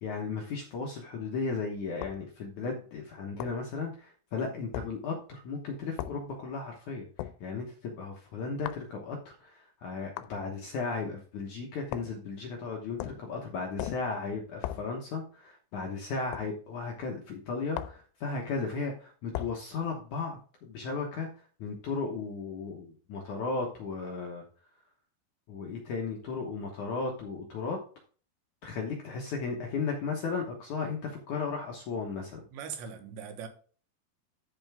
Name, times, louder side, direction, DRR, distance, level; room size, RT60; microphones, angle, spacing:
voice 1, 0.0-21.3 21.6-24.4 25.5-27.8 28.6-32.4, left 4 dB, 70° left, 1.9 m, -35 dB
sound 1, 2.0-2.2 3.4-3.6 4.7-4.9 6.0-6.2 7.2-7.4 8.7-8.9 10.2-10.4 11.9-12.2 13.0-13.3 13.8-14.1 14.6-14.9 16.3-16.5 17.7-18.1 19.3-19.6, left 13 dB, 85° left, 2.8 m, -37 dB
voice 2, 32.5-33.5, right 7 dB, 85° right, 3.5 m, -40 dB
12.5 x 5.3 x 3.5 m
omnidirectional pair, 5.0 m